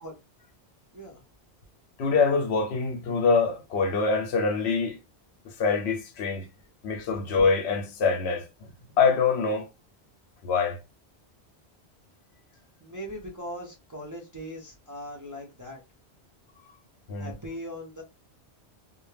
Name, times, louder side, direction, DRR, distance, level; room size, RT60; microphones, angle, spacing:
voice 1, 0.9-1.2 12.8-15.8 17.2-18.0, equal, 30° right, 0.3 m, -39 dB
voice 2, 2.0-5.0 5.4-6.5 6.8-8.7 9.0-9.7 10.4-10.8 17.1-17.3, left 4 dB, 75° left, 0.8 m, -25 dB
2.2 x 2.0 x 3.1 m
omnidirectional pair, 1.1 m